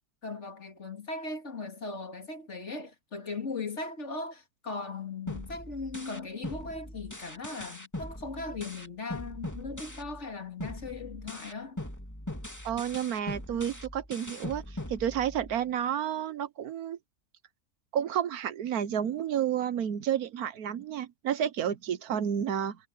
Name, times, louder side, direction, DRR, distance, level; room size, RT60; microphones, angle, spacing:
voice 1, 0.2-11.8, left 3 dB, 50° left, 2.6 m, -38 dB
sound 1, 5.3-10.3 10.6-15.6, left 1 dB, 10° left, 2.9 m, -41 dB
voice 2, 12.6-17.0 17.9-22.8, right 9 dB, 75° right, 1.3 m, -31 dB
omnidirectional pair, 1.6 m